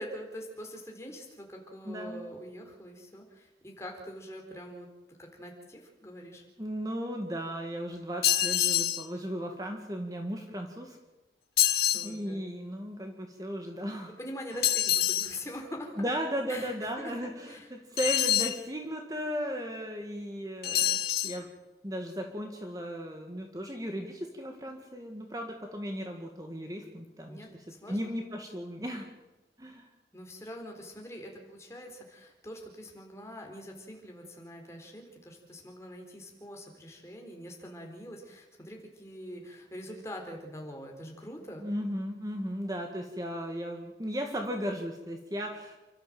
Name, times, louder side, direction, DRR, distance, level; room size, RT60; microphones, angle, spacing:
voice 1, 0.0-4.9 5.2-6.4 11.8-12.4 14.2-16.1 16.5-17.1 17.5-17.7 27.3-27.5 27.8-28.1 30.1-41.6, equal, 15° left, 1 dB, 4.2 m, -44 dB
voice 2, 1.9-2.3 6.6-11.0 11.9-14.1 14.5-14.6 16.0-21.5 21.8-27.4 27.9-29.1 29.6-29.8 41.6-45.8, equal, 20° right, 3 dB, 2.0 m, -36 dB
sound 1, 8.2-9.0 11.6-12.1 14.6-15.3 18.0-18.6 20.6-21.4, left 12 dB, 60° left, 1.2 m, -26 dB
29.0 x 13.0 x 7.7 m, 1.1 s
head